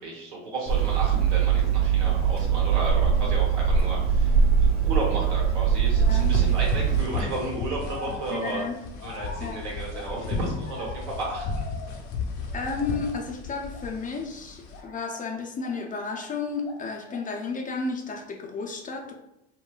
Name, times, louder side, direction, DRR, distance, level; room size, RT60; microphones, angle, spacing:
voice 1, 0.0-4.3 4.6-8.6 9.0-11.6, right 2 dB, 85° right, -3 dB, 1.2 m, -33 dB
Hammer, 0.7-7.0, right 7 dB, 30° right, 1.1 m, -22 dB
voice 2, 5.9-6.4 8.3-8.8 9.4-9.6 12.5-19.1, left 4 dB, 25° left, 1 dB, 0.5 m, -32 dB
sound 1, 6.0-14.8, left 3 dB, 55° left, 0.7 m, -34 dB
sound 2, 6.9-7.2 7.8-12.2 12.5-13.2 13.7-13.9 14.7-16.3 16.6-17.4, left 4 dB, 85° left, 0.9 m, -43 dB
3.8 x 2.1 x 2.3 m, 0.86 s
hypercardioid pair, 90°, 34 cm